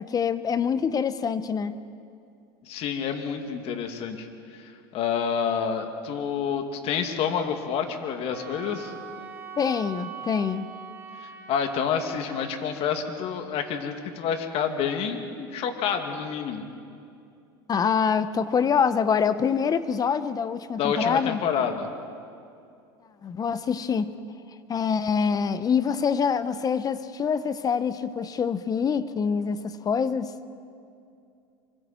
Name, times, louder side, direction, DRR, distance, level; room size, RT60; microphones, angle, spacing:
voice 1, 0.0-1.7 9.6-10.7 17.7-21.4 23.2-24.1 24.7-30.5, left 6 dB, 30° left, 0.9 m, -25 dB
voice 2, 2.7-4.3 4.5-8.9 11.2-16.6 20.8-21.9, left 7 dB, 50° left, 2.6 m, -28 dB
Wind instrument woodwind instrument, 8.3-12.5, right 7 dB, 20° right, 4.7 m, -42 dB
26.5 x 25.0 x 4.5 m
hypercardioid pair, 95°, 13 cm